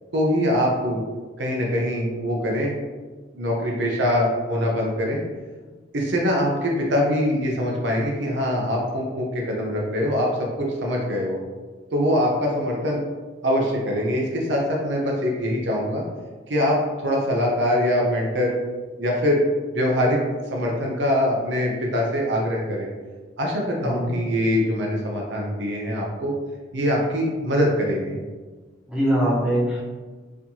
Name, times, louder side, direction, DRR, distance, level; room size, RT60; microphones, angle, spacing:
voice 1, 0.1-1.0 1.4-2.8 3.3-5.2 5.9-11.4 11.9-13.0 13.4-16.0 16.5-18.6 19.0-19.4 19.7-20.2 20.5-22.9 23.4-26.3 26.7-28.2, equal, 65° right, -1 dB, 0.6 m, -23 dB
voice 2, 23.8-24.1 28.9-29.8, equal, 5° right, -9 dB, 1.0 m, -22 dB
4.1 x 2.8 x 2.7 m, 1.3 s
head